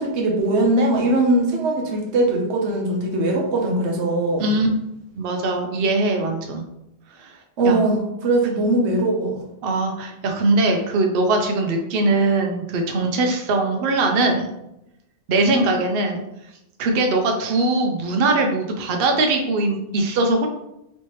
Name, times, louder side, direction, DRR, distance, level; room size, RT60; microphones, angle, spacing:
voice 1, 0.0-4.6 7.6-9.4 15.4-15.8, right 2 dB, 85° right, 0 dB, 1.0 m, -21 dB
voice 2, 5.2-6.6 7.2-7.3 7.6-7.8 9.6-14.5 15.3-16.2 16.8-20.5, right 2 dB, 65° right, 3 dB, 0.7 m, -21 dB
3.2 x 3.0 x 3.0 m, 0.84 s
omnidirectional pair, 1.1 m